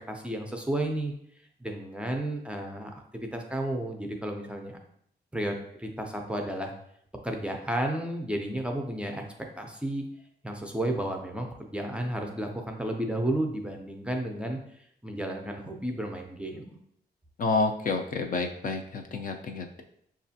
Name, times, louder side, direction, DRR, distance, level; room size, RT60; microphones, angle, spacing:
voice 1, 0.1-1.1 1.6-2.9 3.2-4.8 5.3-6.7 7.2-9.2 9.6-10.0 10.4-14.6 15.0-16.8, right 1 dB, 5° right, 2 dB, 0.4 m, -32 dB
voice 2, 17.4-19.8, left 3 dB, 50° left, 4 dB, 0.5 m, -29 dB
6.3 x 2.4 x 2.7 m, 0.70 s
wide cardioid pair, 160°, 18 cm